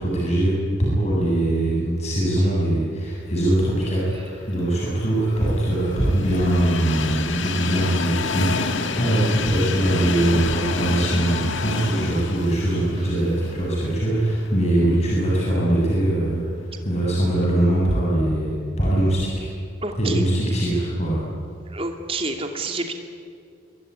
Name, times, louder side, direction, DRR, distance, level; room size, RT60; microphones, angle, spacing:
voice 1, 0.0-16.4 16.8-19.5 20.0-21.2, right 1 dB, 35° left, -5 dB, 7.8 m, -22 dB
Train, 4.4-14.6 15.0-15.1 16.2-16.3, left 4 dB, 75° left, 1.8 m, -29 dB
voice 2, 19.8-20.2 21.7-22.9, right 2 dB, 30° right, 4 dB, 2.8 m, -28 dB
26.0 x 23.0 x 9.9 m, 2.3 s
head